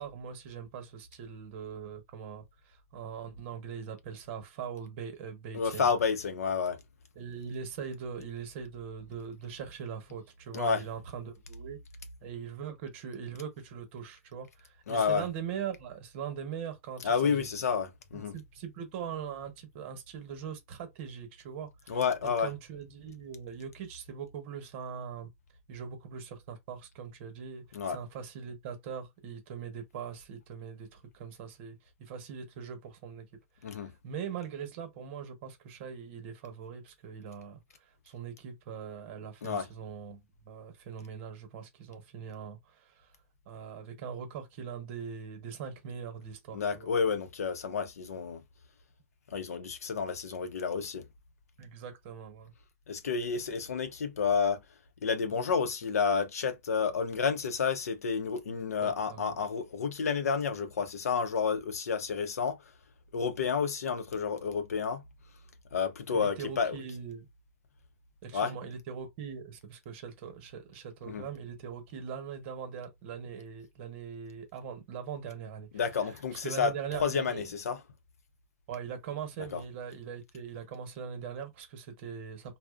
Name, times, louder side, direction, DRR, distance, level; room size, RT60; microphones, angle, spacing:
voice 1, 0.0-5.9 7.1-11.8 12.2-17.5 18.1-25.3 25.7-33.3 33.7-37.6 38.0-43.1 43.5-46.9 51.6-52.5 58.4-59.3 66.1-67.3 68.2-75.7 76.4-77.4 78.7-82.6, right 7 dB, 45° right, 1.0 m, -41 dB
voice 2, 5.5-6.8 10.5-10.8 14.9-15.3 17.0-18.4 21.9-22.5 27.7-28.0 33.6-33.9 39.4-39.7 46.5-48.4 49.3-51.0 52.9-54.6 55.0-62.6 63.1-65.0 65.7-66.8 68.3-68.5 71.0-71.3 75.7-77.8 79.5-79.6, left 6 dB, 85° left, 0.6 m, -30 dB
2.5 x 2.1 x 2.4 m
hypercardioid pair, 135°, 8 cm